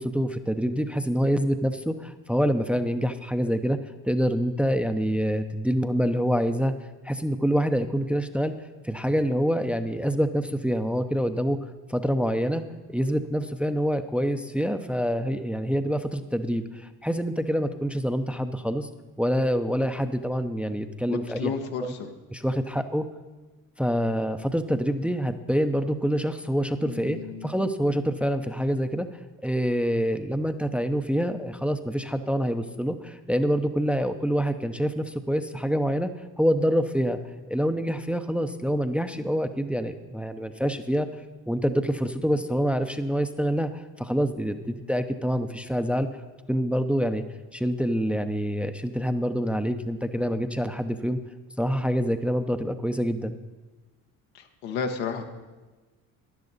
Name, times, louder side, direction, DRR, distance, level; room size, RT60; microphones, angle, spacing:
voice 1, 0.0-6.7 7.0-8.5 8.8-11.6 11.9-12.6 12.9-18.9 19.2-21.5 21.8-21.9 22.3-23.1 23.8-29.1 29.4-36.1 36.4-37.2 37.5-41.1 41.5-46.1 46.5-47.2 47.5-51.2 51.6-53.4, equal, 5° right, 8 dB, 0.6 m, -26 dB
voice 2, 21.1-22.1 26.8-27.5 54.3-55.2, left 6 dB, 80° left, 4 dB, 1.2 m, -32 dB
12.0 x 10.5 x 4.1 m, 1.2 s
hypercardioid pair, 60°, 40 cm